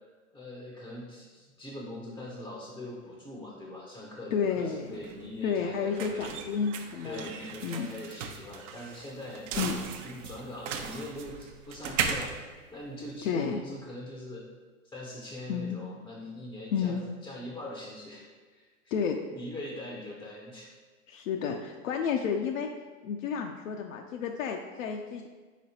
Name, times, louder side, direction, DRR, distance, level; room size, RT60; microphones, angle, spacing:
voice 1, 0.3-6.3 7.0-9.5 10.0-12.3 12.7-14.5 14.8-18.7 19.0-20.7, left 1 dB, 5° left, -3 dB, 0.5 m, -42 dB
voice 2, 4.3-4.9 5.4-7.3 7.6-7.9 9.6-9.8 13.2-13.6 15.5-15.8 16.7-17.0 18.9-19.1 21.1-22.7 23.0-25.3, left 6 dB, 65° left, 3 dB, 0.5 m, -31 dB
sound 1, 4.4-13.5, right 6 dB, 60° right, 0.6 m, -37 dB
5.0 x 3.8 x 2.8 m, 1.4 s
hypercardioid pair, 105°, 42 cm